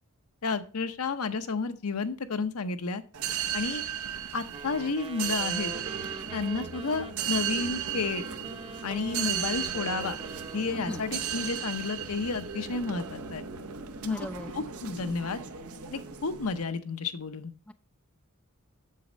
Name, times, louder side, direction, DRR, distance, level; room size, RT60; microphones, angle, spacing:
voice 1, 0.4-3.0 3.5-3.8 4.3-5.7 6.3-8.3 8.8-10.2 10.5-13.4 14.0-14.3 14.5-15.4 15.9-17.5, left 4 dB, 75° left, 9 dB, 0.8 m, -31 dB
sound 1, 3.1-16.6, right 8 dB, 75° right, 0.8 m, -35 dB
Wind instrument woodwind instrument, 4.5-12.0, right 3 dB, 25° right, 0.8 m, -44 dB
voice 2, 14.0-14.5 17.7-17.8, left 1 dB, 5° left, 10 dB, 0.4 m, -37 dB
7.6 x 6.4 x 5.1 m, 0.38 s
head